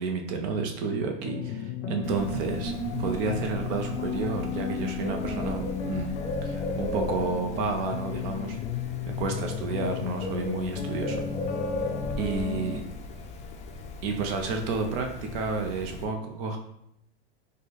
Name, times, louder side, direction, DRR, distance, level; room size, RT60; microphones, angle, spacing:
voice 1, 0.0-2.7 3.0-6.2 6.4-8.6 9.1-11.3 12.2-12.8 14.0-16.6, right 4 dB, 50° right, 3 dB, 0.6 m, -31 dB
sound 1, 1.2-12.8, left 6 dB, 85° left, 0.6 m, -35 dB
sound 2, 1.8-7.0, left 1 dB, 10° right, 1.3 m, -36 dB
Bird, 2.0-16.0, left 2 dB, 20° left, 0.4 m, -37 dB
4.0 x 2.2 x 3.2 m, 0.74 s
hypercardioid pair, 110°, 34 cm